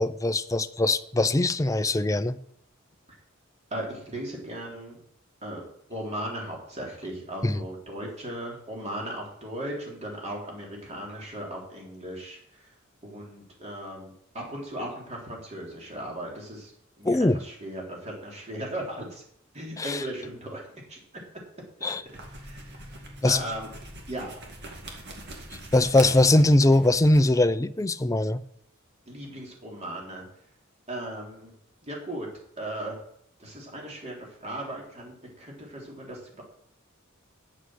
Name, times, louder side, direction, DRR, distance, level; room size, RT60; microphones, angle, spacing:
voice 1, 0.0-2.4 7.4-7.6 17.0-17.4 19.8-20.0 21.8-22.0 23.2-23.4 25.7-28.4, left 2 dB, 15° left, 0.5 m, -21 dB
voice 2, 3.7-5.0 5.4-5.6 5.9-12.7 13.0-16.7 17.0-19.2 19.5-20.6 20.9-21.0 21.8-21.9 22.4-22.8 23.2-23.7 24.1-24.3 29.1-30.2 30.9-31.5 31.8-32.3 32.6-33.0 33.4-36.4, right 1 dB, 35° right, 3.5 m, -37 dB
sound 1, 22.0-27.4, right 2 dB, 55° right, 2.3 m, -43 dB
9.7 x 8.1 x 6.3 m
head